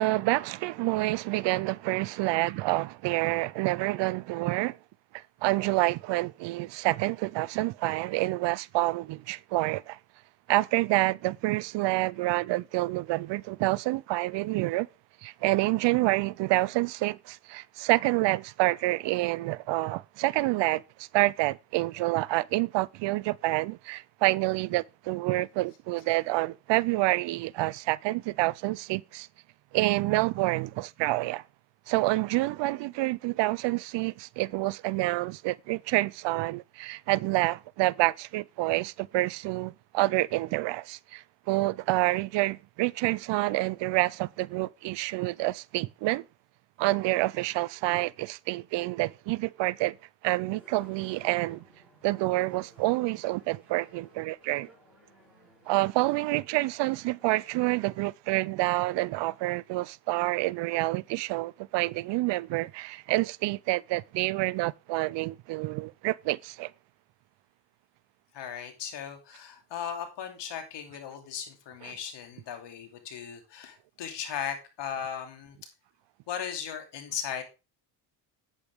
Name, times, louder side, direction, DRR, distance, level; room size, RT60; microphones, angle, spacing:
voice 1, 0.0-4.8 5.1-10.0 10.5-14.9 15.2-29.3 29.7-31.4 31.9-46.3 46.8-50.0 50.2-51.6 52.0-54.7 55.7-66.7 71.9-72.0, right 19 dB, 70° right, 0.6 m, -28 dB
sound 1, 50.3-58.0, equal, 5° right, 6.3 m, -58 dB
voice 2, 68.3-75.6 76.3-77.4, left 8 dB, 65° left, 2.9 m, -37 dB
9.8 x 8.5 x 3.6 m
supercardioid pair, 80°, 45 cm